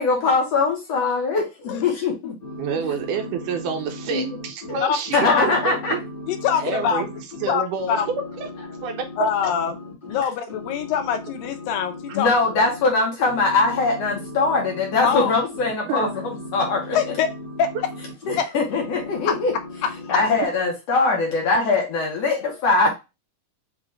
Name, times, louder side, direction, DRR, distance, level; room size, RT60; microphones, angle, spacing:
voice 1, 0.0-2.4 4.1-4.4 5.1-5.9 12.1-17.0 18.3-19.5 20.1-22.9, left 3 dB, 65° left, 0 dB, 1.8 m, -22 dB
sound 1, 2.4-7.5 7.8-10.2 10.5-12.9 13.2-18.4 18.7-20.4, left 1 dB, 40° left, 0.7 m, -37 dB
voice 2, 2.6-6.0 6.6-7.1 7.4-8.0 8.4-8.5 8.8-9.3 15.8-16.1, right 5 dB, 75° right, 5 dB, 2.2 m, -28 dB
voice 3, 6.3-7.1 7.5-8.1 9.2-9.8 10.0-12.3 15.0-15.3 16.9-17.3 17.6-17.7 18.4-18.5, left 7 dB, 85° left, 7 dB, 2.5 m, -23 dB
5.8 x 2.5 x 3.1 m, 0.25 s
omnidirectional pair, 3.9 m